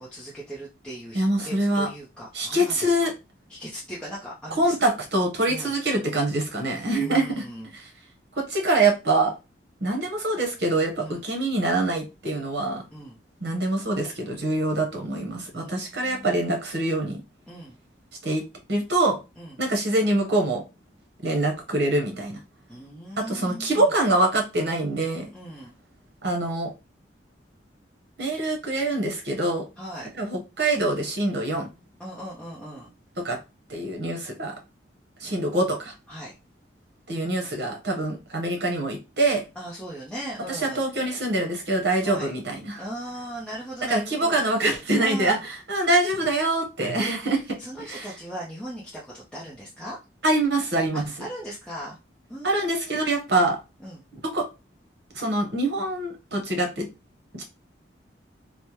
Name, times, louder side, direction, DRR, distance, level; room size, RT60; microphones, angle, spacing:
voice 1, 0.0-3.1 3.5-4.7 5.5-5.7 7.0-7.7 11.0-11.2 12.9-13.2 15.5-16.4 17.5-17.8 19.4-19.6 22.7-23.9 25.3-25.7 29.8-30.1 32.0-32.9 36.1-36.4 39.6-40.8 42.0-42.3 42.8-44.4 45.0-45.4 47.6-50.0 50.9-52.0 52.3-53.0 53.8-54.0, right 1 dB, 5° left, 0.6 m, -38 dB
voice 2, 1.1-1.9 2.3-3.1 4.6-7.4 7.7-7.9 8.4-9.3 9.8-12.8 13.4-17.2 18.2-19.2 19.6-20.6 21.2-22.4 23.2-25.3 26.2-26.7 28.2-29.7 30.2-31.7 33.2-33.4 33.7-34.5 35.2-35.9 37.1-39.4 40.5-42.8 43.9-47.6 47.9-48.1 50.2-51.3 52.4-53.6 54.3-54.4 55.1-56.9 57.3-57.4, right 2 dB, 60° right, 1.0 m, -25 dB
3.3 x 2.1 x 2.9 m
head